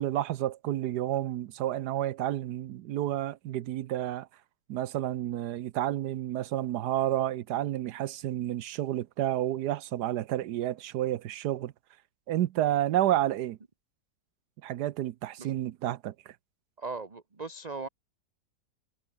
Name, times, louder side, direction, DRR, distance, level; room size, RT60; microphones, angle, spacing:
voice 1, 0.0-4.3 4.7-11.7 12.3-13.6 14.6-16.3, right 13 dB, 85° right, 1.3 m, -30 dB
voice 2, 16.8-17.9, right 4 dB, 25° right, 1.4 m, -38 dB
omnidirectional pair, 1.7 m